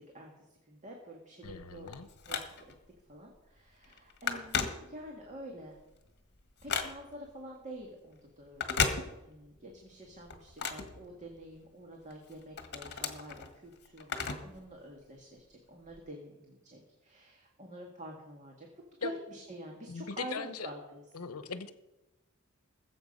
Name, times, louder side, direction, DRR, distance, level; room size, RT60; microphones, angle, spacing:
voice 1, 0.7-1.9 2.3-2.4 3.1-5.8 6.6-8.9 9.3-18.7 19.0-21.0, right 1 dB, 35° right, 0 dB, 1.9 m, -47 dB
voice 2, 1.4-2.1 19.0-19.1 19.9-20.7 21.1-21.7, left 5 dB, 75° left, 12 dB, 0.9 m, -39 dB
Telephone, 1.5-2.9 3.4-3.6 3.8-5.3 5.8-7.3 8.5-9.6 9.9-11.6 12.1-14.6 14.9-15.0 15.9-16.0, left 6 dB, 50° left, 1.5 m, -36 dB
19.5 x 7.9 x 5.4 m, 0.99 s
head